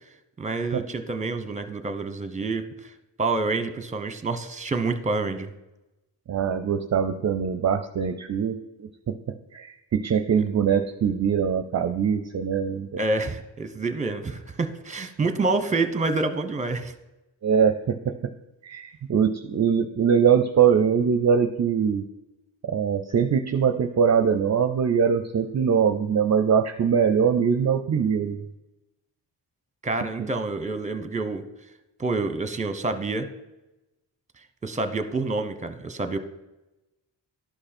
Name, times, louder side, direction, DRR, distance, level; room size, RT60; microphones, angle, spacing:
voice 1, 0.4-2.9 3.2-5.5 13.0-16.9 29.8-31.4 32.0-33.3 34.6-36.2, right 3 dB, 15° right, 9 dB, 0.8 m, -27 dB
voice 2, 6.3-9.1 9.5-13.0 17.4-18.1 18.6-22.0 22.6-28.4, right 7 dB, 40° right, 8 dB, 0.5 m, -22 dB
11.5 x 5.3 x 4.3 m, 0.99 s
cardioid pair, 90°, 44 cm